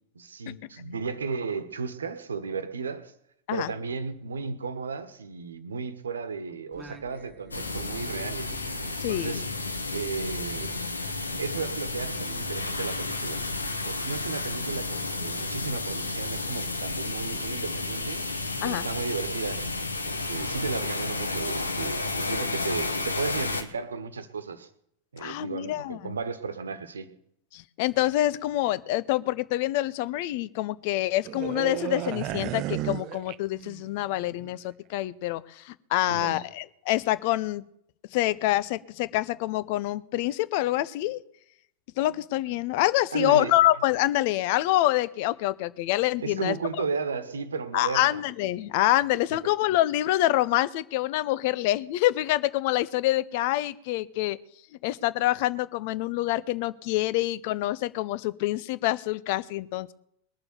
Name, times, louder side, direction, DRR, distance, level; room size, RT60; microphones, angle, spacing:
voice 1, 0.1-3.1 3.5-8.6 9.1-9.4 9.9-10.7 11.4-13.4 13.8-18.2 18.6-19.6 20.0-24.7 25.1-27.1 36.1-36.4 43.1-43.5 46.2-48.2, right 5 dB, 70° right, 12 dB, 1.3 m, -34 dB
Singing, 6.7-11.5, right 2 dB, 10° right, 1.8 m, -50 dB
sound 1, 7.5-23.6, left 3 dB, 80° left, 1.2 m, -32 dB
voice 2, 9.0-9.4 18.6-18.9 25.2-26.1 27.5-37.6 38.1-41.2 42.0-46.5 47.7-54.4 54.8-59.9, left 16 dB, 50° left, 18 dB, 0.6 m, -26 dB
sound 2, 31.2-33.9 34.2-34.5, right 14 dB, 40° right, 0.4 m, -33 dB
20.5 x 6.9 x 6.9 m, 0.72 s
figure-of-eight pair, 90°, 0 cm